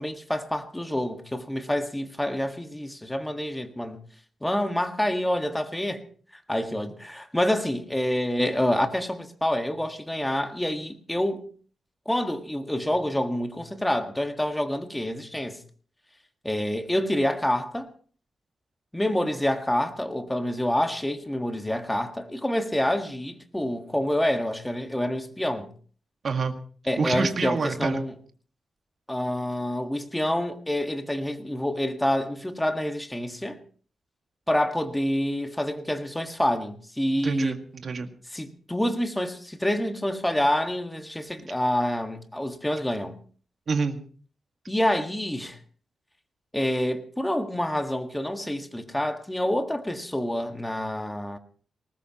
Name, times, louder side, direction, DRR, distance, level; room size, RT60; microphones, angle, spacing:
voice 1, 0.0-4.0 4.4-6.0 6.5-11.5 12.0-15.6 16.4-17.9 18.9-25.7 26.9-28.1 29.1-33.6 34.5-37.6 38.3-43.2 44.7-45.6 46.5-51.4, left 1 dB, 10° left, 1.7 m, -27 dB
voice 2, 26.2-26.5 27.0-28.0 37.2-38.1 43.7-44.0, right 4 dB, 50° right, 1.9 m, -27 dB
20.0 x 19.0 x 3.0 m
wide cardioid pair, 120°, 0 cm